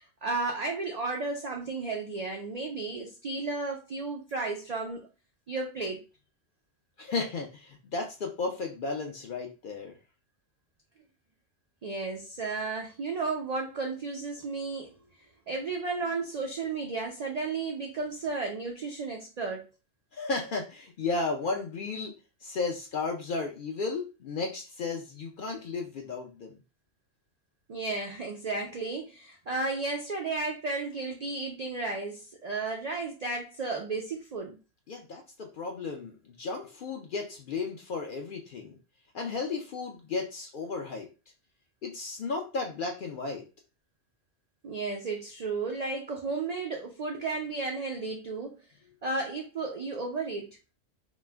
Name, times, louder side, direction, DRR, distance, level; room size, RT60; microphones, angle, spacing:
voice 1, 0.0-5.0 5.5-6.0 11.8-14.9 15.5-19.7 27.7-34.6 44.6-48.6 49.0-50.6, right 3 dB, 65° right, 0.4 m, -33 dB
voice 2, 7.0-10.0 20.1-22.2 22.4-26.6 34.9-38.8 39.1-41.1 41.8-43.4, left 4 dB, 60° left, 0.5 m, -34 dB
3.0 x 2.0 x 3.3 m
omnidirectional pair, 1.2 m